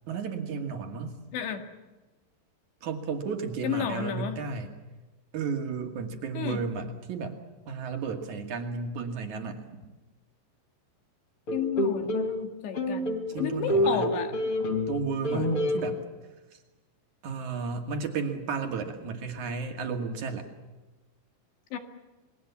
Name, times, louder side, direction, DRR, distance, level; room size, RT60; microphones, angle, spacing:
voice 1, 0.1-1.2 2.8-4.7 5.3-7.4 7.7-9.7 13.3-14.1 14.9-16.0 16.5-16.6 17.2-20.5, right 5 dB, 50° right, 4 dB, 2.9 m, -33 dB
voice 2, 1.3-1.6 3.6-4.4 6.4-6.6 11.5-14.5 21.7-21.8, left 8 dB, 70° left, 6 dB, 3.8 m, -32 dB
sound 1, 11.5-12.3 12.8-15.0 15.2-15.8, left 1 dB, 30° left, 3.4 m, -27 dB
28.0 x 21.0 x 7.2 m, 1.2 s
omnidirectional pair, 5.5 m